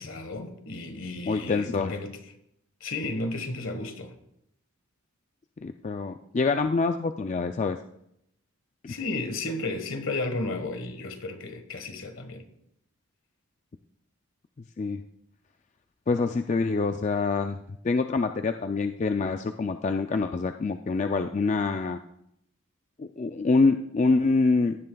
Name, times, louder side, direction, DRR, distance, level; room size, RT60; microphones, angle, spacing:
voice 1, 0.0-2.1 2.8-4.1 8.9-12.4, left 2 dB, 70° left, 1.4 m, -33 dB
voice 2, 1.3-1.9 5.6-7.8 8.8-8.9 14.8-15.0 16.1-22.0 23.0-24.8, left 3 dB, 35° left, 0.3 m, -26 dB
15.0 x 11.0 x 2.3 m
head